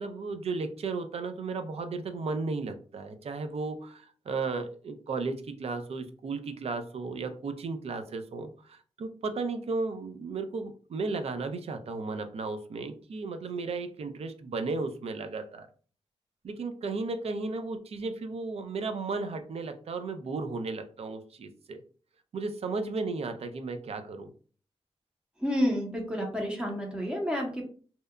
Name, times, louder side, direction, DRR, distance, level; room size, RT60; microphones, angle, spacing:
voice 1, 0.0-15.7 16.4-21.8 22.3-24.3, right 3 dB, 65° right, 8 dB, 0.4 m, -34 dB
voice 2, 25.4-27.6, equal, 10° right, 0 dB, 0.6 m, -29 dB
2.7 x 2.1 x 2.3 m, 0.42 s
wide cardioid pair, 110°, 11 cm